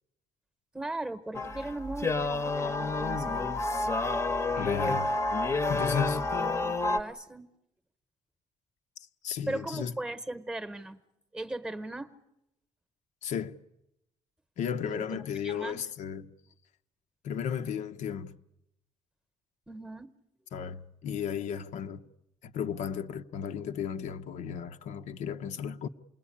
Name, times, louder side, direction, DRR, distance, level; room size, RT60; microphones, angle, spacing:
voice 1, 0.7-3.6 6.2-7.5 9.5-11.0 11.3-12.1 14.8-15.8 19.7-20.1, right 2 dB, 5° right, 1.0 m, -38 dB
sound 1, 1.3-7.0, left 3 dB, 20° left, 0.9 m, -29 dB
voice 2, 4.5-5.1 5.7-6.2 9.2-9.9 13.2-13.6 14.6-16.3 17.2-18.3 20.5-22.0 22.4-25.9, left 7 dB, 80° left, 0.9 m, -34 dB
28.0 x 20.5 x 8.6 m
cardioid pair, 165°, 12 cm